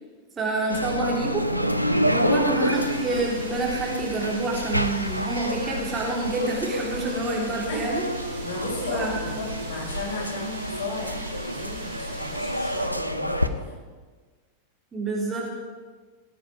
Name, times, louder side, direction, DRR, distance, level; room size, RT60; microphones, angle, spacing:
voice 1, 0.4-1.4 2.0-8.0 8.9-9.4 14.9-15.5, right 2 dB, 20° right, -3 dB, 3.4 m, -28 dB
sound 1, 0.7-13.5, equal, 90° left, 0.7 m, -28 dB
voice 2, 2.1-2.5 7.3-13.8, left 3 dB, 50° left, -2 dB, 5.5 m, -35 dB
sound 2, 2.7-12.8, right 3 dB, 70° right, 5.1 m, -42 dB
18.5 x 9.4 x 5.1 m, 1.4 s
figure-of-eight pair, 90°, 0 cm